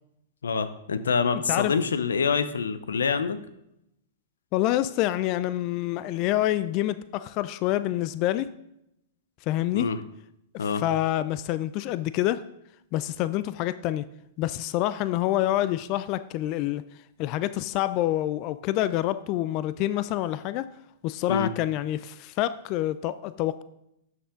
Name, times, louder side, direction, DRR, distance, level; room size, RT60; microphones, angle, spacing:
voice 1, 0.4-3.4 9.7-10.0 10.6-10.8 21.3-21.5, left 5 dB, 85° left, 12 dB, 0.8 m, -26 dB
voice 2, 4.5-8.5 9.5-9.9 10.5-12.4 12.9-14.0 14.4-16.8 17.2-20.7 21.0-23.6, left 14 dB, 45° left, 15 dB, 0.4 m, -27 dB
12.0 x 6.2 x 3.8 m, 0.81 s
hypercardioid pair, 115°, 0 cm